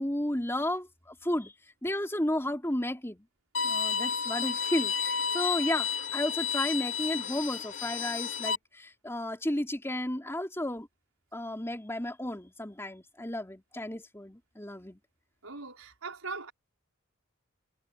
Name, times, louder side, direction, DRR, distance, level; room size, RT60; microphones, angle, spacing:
voice 1, 0.0-1.5 1.8-3.2 3.6-10.9 11.3-15.0, left 1 dB, 10° left, 3.3 m, -33 dB
Bowed string instrument, 3.5-8.5, left 7 dB, 65° left, 3.1 m, -31 dB
voice 2, 15.4-16.5, right 4 dB, 80° right, 5.1 m, -40 dB
head